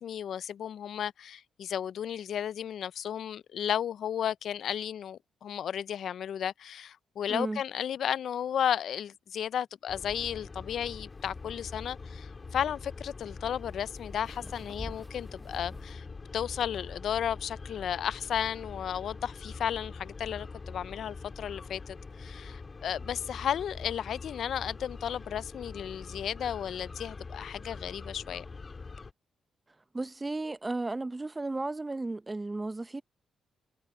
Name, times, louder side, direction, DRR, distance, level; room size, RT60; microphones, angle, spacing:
voice 1, 0.0-16.0 16.3-28.5, left 9 dB, 70° left, 0.5 m, -34 dB
voice 2, 7.3-7.6 29.9-33.0, right 2 dB, 25° right, 1.0 m, -34 dB
sound 1, 9.9-29.1, left 4 dB, 40° left, 2.9 m, -44 dB
sound 2, 11.1-15.9, equal, 5° right, 0.6 m, -50 dB
supercardioid pair, 55°, 0 cm